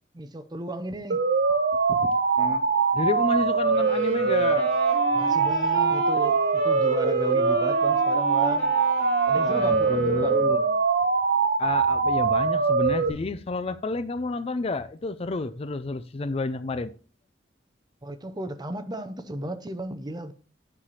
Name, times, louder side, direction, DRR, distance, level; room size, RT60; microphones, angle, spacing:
voice 1, 0.1-1.2 5.1-8.7 9.3-10.4 18.0-20.3, right 1 dB, 20° right, 0.6 m, -34 dB
sound 1, 1.1-13.1, right 4 dB, 55° right, 0.7 m, -23 dB
voice 2, 1.9-2.7 2.9-5.5 9.2-10.7 11.6-16.9, left 3 dB, 30° left, 0.4 m, -31 dB
sound 2, 3.7-10.7, right 1 dB, 80° right, 2.6 m, -36 dB
9.8 x 3.3 x 5.6 m
head